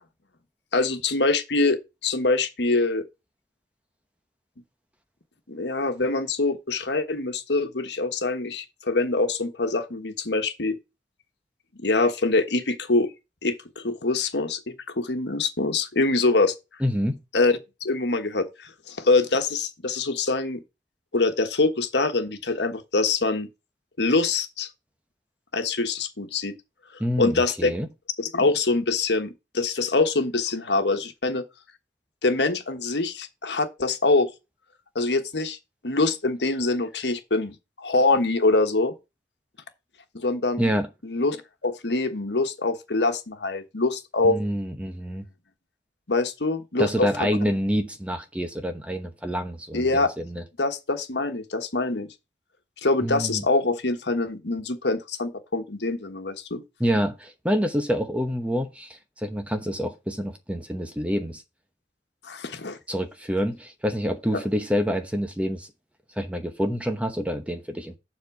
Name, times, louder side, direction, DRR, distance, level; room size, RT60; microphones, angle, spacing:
voice 1, 0.7-3.0 5.5-10.7 11.8-13.1 13.4-16.5 17.3-17.6 17.8-20.6 21.1-23.5 24.0-24.7 25.5-26.5 27.2-27.7 28.2-31.4 32.2-34.3 34.9-35.6 35.8-38.9 40.1-40.6 41.0-41.4 41.6-44.4 46.1-47.3 49.7-50.1 50.6-52.1 52.8-56.6 62.2-62.8 64.3-64.4, left 3 dB, 80° left, 1.3 m, -24 dB
voice 2, 16.8-17.2 27.0-27.9 40.6-40.9 44.2-45.2 46.8-50.4 53.0-53.4 56.8-61.4 62.9-65.7 66.2-67.9, equal, 5° right, 0.9 m, -27 dB
7.4 x 4.3 x 6.9 m
head